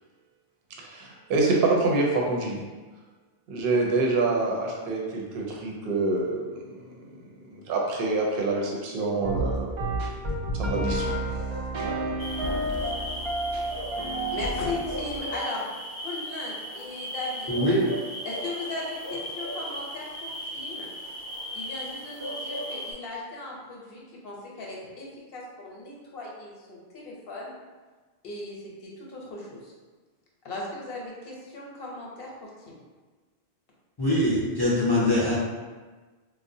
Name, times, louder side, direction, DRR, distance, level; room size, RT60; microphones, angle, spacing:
voice 1, 0.8-2.6 3.5-6.9 7.5-10.0 10.5-11.1 11.8-12.0, right 3 dB, 65° right, -1 dB, 0.7 m, -26 dB
sound 1, 9.2-15.2, right 1 dB, 50° right, 0.3 m, -30 dB
sound 2, 12.2-22.9, equal, 25° right, 0.8 m, -36 dB
voice 2, 14.3-15.7 16.0-17.5 18.2-20.9 21.5-27.5 28.2-29.7 30.4-32.8, left 2 dB, 65° left, -3 dB, 0.9 m, -37 dB
voice 3, 17.5-17.9 34.0-35.3, left 1 dB, 30° left, -9 dB, 0.5 m, -23 dB
3.6 x 2.0 x 2.6 m, 1.3 s
omnidirectional pair, 1.1 m